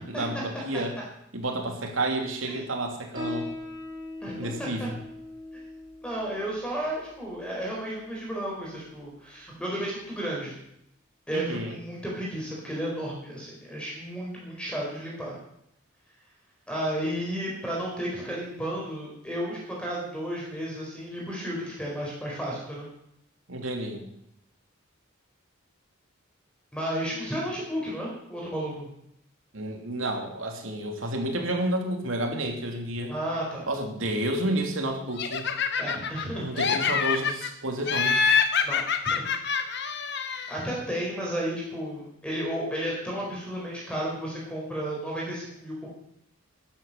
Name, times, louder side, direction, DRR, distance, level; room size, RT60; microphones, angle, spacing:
voice 1, 0.1-1.0 1.3-3.5 4.4-5.0 11.3-11.8 23.5-24.1 29.5-33.1 33.7-35.5 36.4-38.2, right 1 dB, 70° right, 3 dB, 2.8 m, -30 dB
Piano, 3.1-10.2, left 1 dB, 20° right, 3.6 m, -42 dB
voice 2, 4.2-4.9 6.0-10.5 11.3-15.4 16.7-22.9 26.7-28.9 33.1-33.7 35.8-36.4 38.6-38.8 39.1-39.2 39.9-40.1 40.5-45.9, right 1 dB, 5° left, -3 dB, 4.4 m, -33 dB
Laughter, 35.2-36.3 36.6-37.5 37.9-40.6, left 6 dB, 55° left, 1.2 m, -26 dB
12.0 x 11.5 x 6.7 m, 0.75 s
head